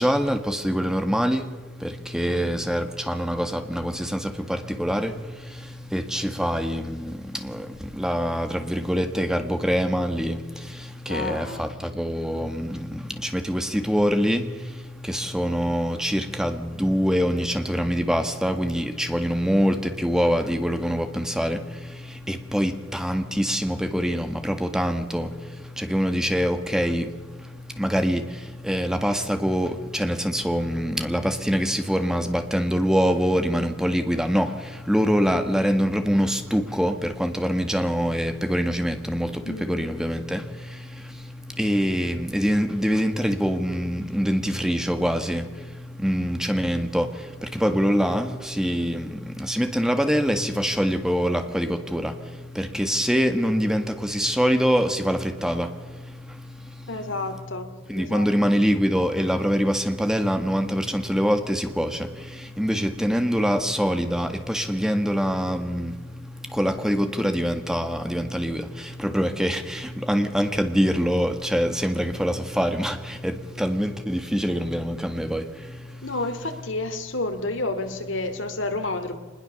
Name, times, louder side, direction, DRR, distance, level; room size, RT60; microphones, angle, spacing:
voice 1, 0.0-1.4 1.8-5.1 5.9-7.1 7.4-7.6 8.0-10.4 11.1-12.8 13.3-14.4 15.1-21.6 22.3-25.3 25.8-27.0 27.8-28.2 28.7-34.5 34.9-39.3 39.7-40.4 41.6-45.4 46.0-47.0 47.5-49.1 49.4-52.1 52.6-55.7 57.9-62.0 62.6-65.9 66.6-68.6 69.0-73.0 73.2-75.4, equal, 5° right, 7 dB, 1.8 m, -24 dB
voice 2, 2.3-2.6 11.1-11.8 39.4-39.9 56.9-58.3 76.0-79.2, left 2 dB, 75° left, 6 dB, 3.0 m, -30 dB
24.5 x 21.0 x 7.1 m, 1.3 s
head